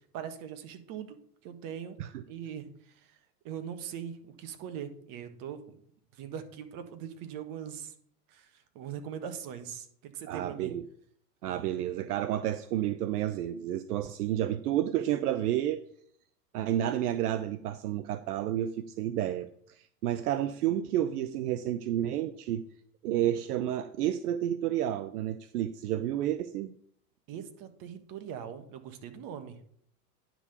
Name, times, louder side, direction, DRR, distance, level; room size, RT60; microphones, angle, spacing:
voice 1, 0.1-1.2 1.4-2.0 2.3-3.2 3.4-5.8 6.1-7.9 8.3-10.7 27.3-29.7, right 8 dB, 45° right, 9 dB, 1.4 m, -41 dB
voice 2, 10.3-10.8 11.4-15.8 16.5-22.6 23.0-26.7, right 12 dB, 75° right, 13 dB, 0.7 m, -30 dB
9.9 x 3.8 x 6.8 m, 0.64 s
hypercardioid pair, 100°, 46 cm